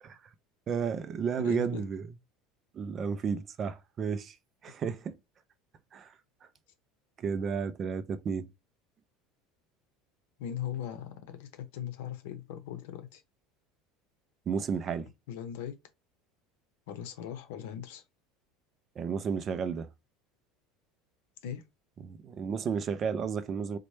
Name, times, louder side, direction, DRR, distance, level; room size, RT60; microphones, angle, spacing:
voice 1, 0.7-2.1 2.7-4.4 4.6-5.1 5.9-6.1 7.2-8.5 14.5-15.1 19.0-19.9 22.0-23.8, right 6 dB, 25° right, 0.3 m, -32 dB
voice 2, 1.4-1.8 10.4-13.2 15.3-15.7 16.9-18.0 21.4-21.6, left 9 dB, 80° left, 0.7 m, -39 dB
4.0 x 2.1 x 3.2 m
cardioid pair, 175°, 0 cm